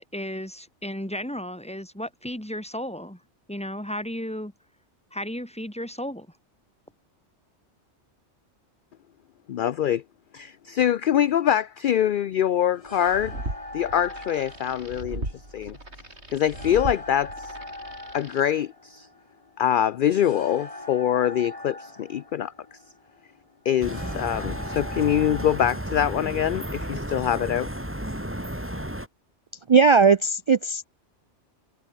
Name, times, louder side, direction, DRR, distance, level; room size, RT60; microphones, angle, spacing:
voice 1, 0.0-3.2 3.5-4.5 5.1-6.3, equal, 5° left, 2.3 m, -34 dB
voice 2, 9.5-10.0 10.3-13.3 13.7-15.8 16.3-17.5 18.1-19.1 19.6-22.5 23.6-27.7, left 10 dB, 60° left, 0.6 m, -24 dB
sound 1, 12.7-25.8, left 2 dB, 30° left, 3.0 m, -42 dB
sound 2, 12.9-18.4, right 1 dB, 65° right, 6.7 m, -37 dB
sound 3, 23.8-29.1, equal, 10° right, 3.7 m, -33 dB
voice 3, 29.7-30.9, right 5 dB, 50° right, 0.3 m, -18 dB
omnidirectional pair, 1.2 m